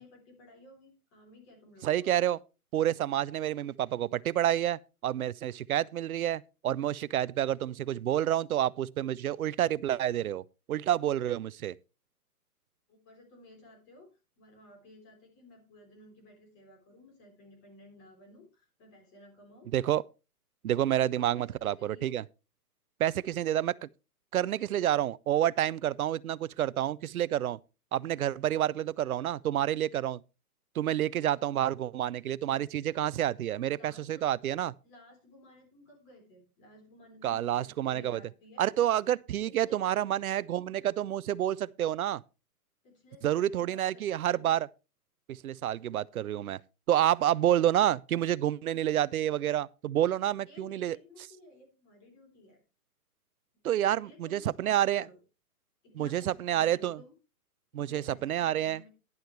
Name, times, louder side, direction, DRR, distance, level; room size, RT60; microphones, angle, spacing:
voice 1, 0.0-2.2 12.9-19.7 21.0-22.2 33.8-34.2 34.8-38.7 39.5-40.1 42.8-44.4 50.5-52.6 53.8-55.2 55.8-57.1 57.7-58.9, left 1 dB, 20° left, 3.7 m, -55 dB
voice 2, 1.8-2.4 2.7-11.7 19.7-20.0 20.6-22.2 23.0-23.9 24.3-27.6 27.9-30.2 30.7-34.7 37.2-38.2 38.6-42.2 43.2-44.7 45.3-46.6 46.9-51.0 53.6-55.1 56.0-57.0 57.7-58.8, right 11 dB, 65° right, 0.6 m, -29 dB
11.5 x 11.0 x 3.2 m
hypercardioid pair, 170°, 46 cm